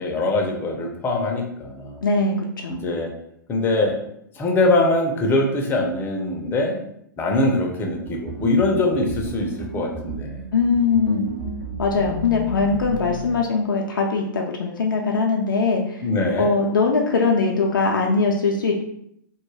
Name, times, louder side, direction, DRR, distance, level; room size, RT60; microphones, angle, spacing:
voice 1, 0.0-2.0 2.7-3.1 3.5-4.0 4.3-6.8 7.2-10.5 16.0-16.5, left 2 dB, 20° left, 1 dB, 0.5 m, -22 dB
voice 2, 2.0-2.8 10.5-11.3 11.8-16.0 16.4-18.8, left 4 dB, 75° left, 0 dB, 0.4 m, -21 dB
sound 1, 8.1-13.4, right 2 dB, 65° right, 0.8 m, -33 dB
2.3 x 2.1 x 3.2 m, 0.74 s
figure-of-eight pair, 110°, 11 cm